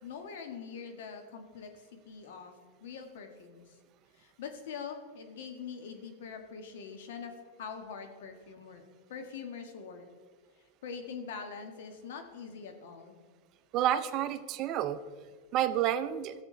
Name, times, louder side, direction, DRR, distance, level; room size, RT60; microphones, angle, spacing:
voice 1, 0.0-2.5 2.8-3.6 4.2-7.3 7.6-8.8 9.1-10.0 10.8-13.2, left 6 dB, 75° left, 6 dB, 1.5 m, -43 dB
voice 2, 13.7-15.0 15.5-16.3, right 11 dB, 45° right, 12 dB, 0.6 m, -29 dB
14.0 x 7.4 x 3.8 m, 1.5 s
supercardioid pair, 125°, 0 cm